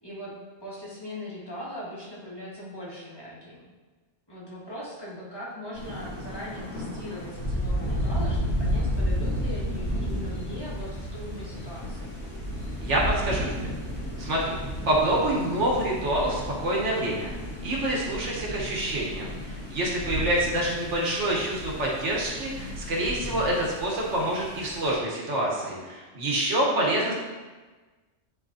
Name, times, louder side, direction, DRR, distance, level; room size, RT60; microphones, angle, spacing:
voice 1, 0.0-0.3 0.6-3.6 4.3-12.2 18.2-18.6 26.6-27.1, equal, 20° left, -8 dB, 1.6 m, -40 dB
Thunder, 5.7-24.9, equal, 85° left, 2.0 m, -32 dB
voice 2, 12.8-13.6 14.2-14.6 14.8-17.3 17.6-27.1, right 1 dB, 90° right, -4 dB, 1.7 m, -27 dB
10.5 x 3.6 x 2.8 m, 1.3 s
omnidirectional pair, 1.2 m